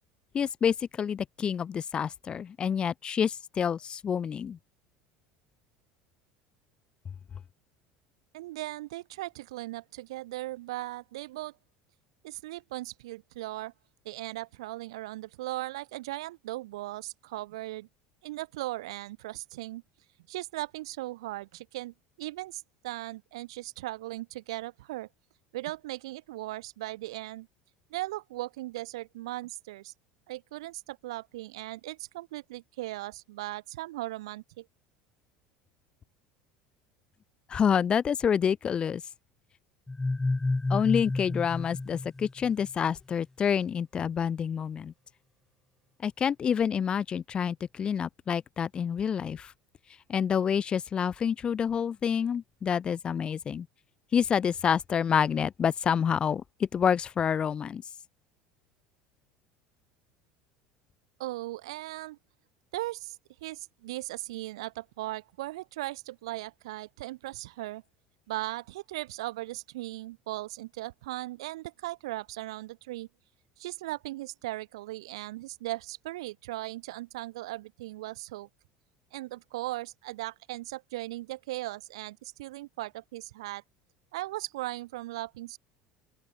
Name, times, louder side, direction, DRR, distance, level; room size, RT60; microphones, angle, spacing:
voice 1, 0.3-4.6 37.5-39.0 40.7-44.9 46.0-49.5 50.1-53.7 54.1-57.8, left 7 dB, 35° left, 1.9 m, -28 dB
voice 2, 8.3-11.5 12.2-13.7 14.0-17.9 18.2-19.8 20.3-25.1 25.5-27.5 27.9-29.9 30.3-34.7 61.2-62.2 62.7-67.8 68.3-73.1 73.6-78.5 79.1-83.6 84.1-85.6, right 18 dB, 80° right, 2.4 m, -38 dB
sound 1, 39.9-42.7, left 2 dB, 10° left, 0.8 m, -30 dB
open air
hypercardioid pair, 90°, 3 cm